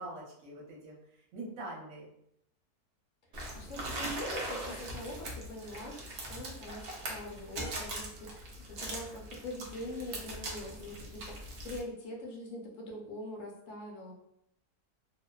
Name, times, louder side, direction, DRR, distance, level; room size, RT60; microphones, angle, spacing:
voice 1, 0.0-2.1, right 2 dB, 60° right, -4 dB, 1.1 m, -44 dB
voice 2, 3.3-14.1, left 1 dB, 65° left, 0 dB, 0.9 m, -43 dB
sound 1, 3.3-11.8, right 1 dB, 90° right, 0.5 m, -41 dB
2.7 x 2.0 x 2.2 m, 0.74 s
omnidirectional pair, 1.6 m